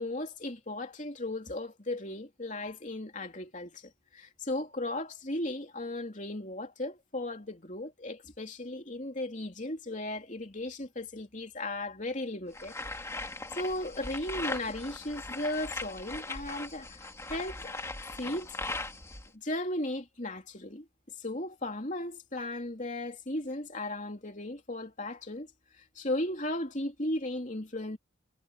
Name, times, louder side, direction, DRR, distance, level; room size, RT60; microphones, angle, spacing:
voice 1, 0.0-12.7 13.6-17.8 18.2-18.5 19.3-20.9 21.2-25.5 25.7-28.0, left 1 dB, 35° left, 3.2 m, -36 dB
sound 1, 12.5-19.3, left 2 dB, 15° left, 2.1 m, -39 dB
head